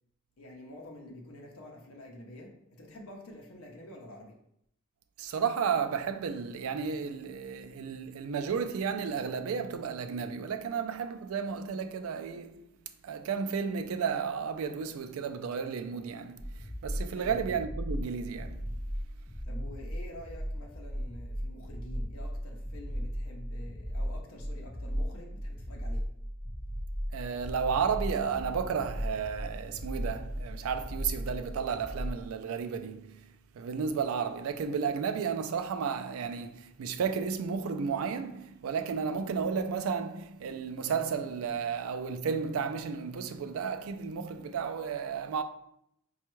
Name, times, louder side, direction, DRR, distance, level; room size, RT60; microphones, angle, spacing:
voice 1, 0.4-4.4 17.1-17.5 19.4-26.1, left 1 dB, 90° left, 0.6 m, -48 dB
voice 2, 5.2-12.7 13.0-18.6 27.1-45.4, right 6 dB, 90° right, 0.3 m, -33 dB
sound 1, 16.4-32.2, equal, 10° left, 0.3 m, -37 dB
4.3 x 2.3 x 3.0 m
head